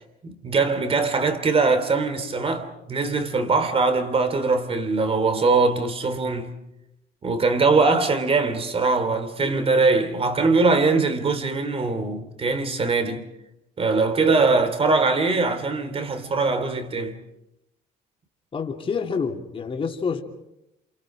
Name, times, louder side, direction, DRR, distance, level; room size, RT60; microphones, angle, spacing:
voice 1, 0.2-6.5 7.2-13.2 13.8-17.2, right 3 dB, 35° right, 3.2 m, -22 dB
voice 2, 18.5-20.2, left 5 dB, 30° left, 3.1 m, -27 dB
28.5 x 28.0 x 5.0 m
cardioid pair, 110°, 17 cm